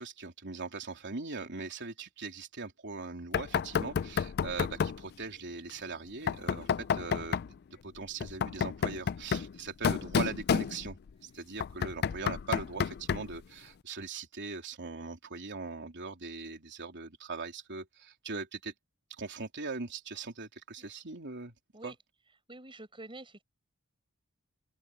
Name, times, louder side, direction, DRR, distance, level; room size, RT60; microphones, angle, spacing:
voice 1, 0.0-7.5 7.8-11.0 11.2-18.7 19.2-21.5 21.8-21.9, right 4 dB, 55° right, 3.5 m, -40 dB
Knock, 3.3-5.1 6.3-7.5 8.2-11.1 11.6-13.4, left 7 dB, 50° left, 0.4 m, -31 dB
voice 2, 22.5-23.4, right 2 dB, 25° right, 6.3 m, -47 dB
open air
head